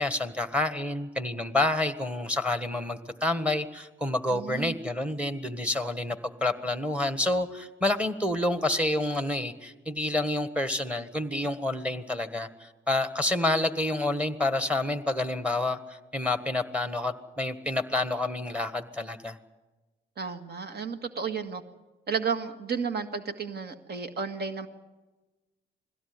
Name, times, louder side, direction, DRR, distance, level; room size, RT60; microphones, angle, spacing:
voice 1, 0.0-19.4, left 2 dB, 5° right, 10 dB, 1.5 m, -28 dB
voice 2, 4.3-4.8 20.2-21.6 22.1-24.7, right 6 dB, 55° right, 8 dB, 1.9 m, -32 dB
21.5 x 16.5 x 9.7 m, 1.1 s
cardioid pair, 90°, 20 cm